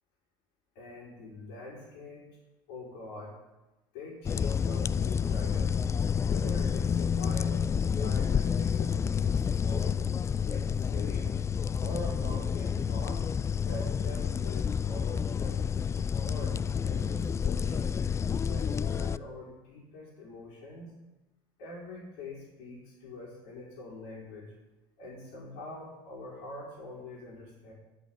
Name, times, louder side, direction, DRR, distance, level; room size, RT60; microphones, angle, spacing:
voice 1, 0.8-2.3 2.7-3.4 3.9-5.8 6.3-10.0 10.4-11.3 11.8-13.3 13.7-15.7 16.2-17.9 18.4-21.0 21.6-24.5 25.0-27.7, left 2 dB, 65° left, -6 dB, 5.1 m, -44 dB
sound 1, 4.3-19.2, left 7 dB, 25° left, 0.4 m, -29 dB
14.0 x 6.3 x 8.9 m, 1.0 s
hypercardioid pair, 85°, 12 cm